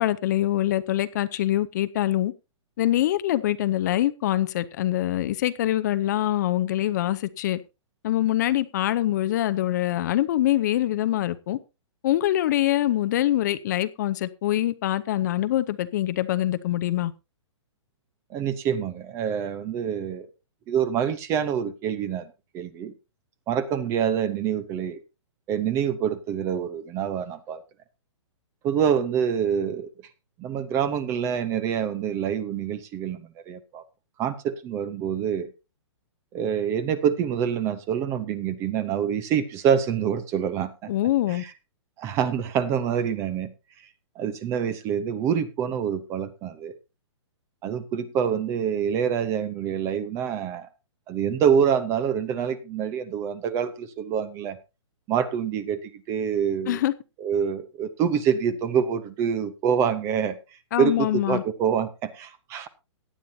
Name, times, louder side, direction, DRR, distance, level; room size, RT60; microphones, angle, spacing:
voice 1, 0.0-2.3 2.8-7.6 8.0-11.6 12.0-17.1 40.9-41.4 56.7-56.9 60.7-61.4, left 13 dB, 35° left, 0.6 m, -24 dB
voice 2, 18.3-20.3 20.7-22.3 22.5-22.9 23.5-25.0 25.5-27.6 28.6-29.9 30.4-33.8 34.2-35.5 36.3-40.9 41.3-41.5 42.0-43.5 44.2-46.7 47.6-50.7 51.1-54.6 55.1-56.8 57.2-60.4 60.8-62.7, right 8 dB, 15° right, 0.7 m, -26 dB
17.5 x 10.5 x 2.7 m
hypercardioid pair, 160°, 16 cm